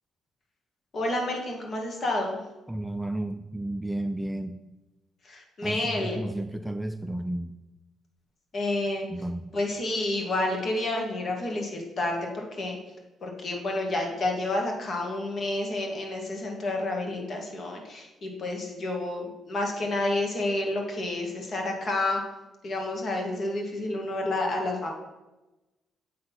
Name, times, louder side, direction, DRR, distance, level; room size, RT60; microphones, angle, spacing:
voice 1, 0.9-2.4 5.2-6.2 8.5-9.1 9.5-12.8 13.2-22.2 22.6-24.9, left 2 dB, 50° left, 1 dB, 2.0 m, -29 dB
voice 2, 2.7-4.6 5.6-7.5 9.1-9.5, right 1 dB, 5° right, 8 dB, 0.3 m, -32 dB
7.8 x 4.0 x 5.6 m, 1.1 s
cardioid pair, 90°, 0 cm